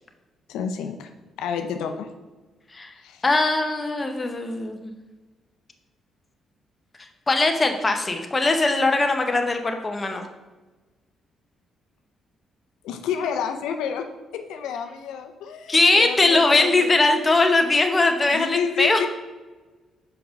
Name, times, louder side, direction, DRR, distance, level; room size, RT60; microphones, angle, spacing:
voice 1, 0.5-1.1 1.4-2.1 3.0-3.2 12.8-14.1 14.3-16.9 18.2-19.1, left 7 dB, 90° left, 6 dB, 0.6 m, -30 dB
voice 2, 3.2-5.0 7.3-10.2 15.7-19.1, left 2 dB, 25° left, 5 dB, 0.9 m, -20 dB
5.8 x 5.2 x 5.2 m, 1.2 s
cardioid pair, 90°, 0 cm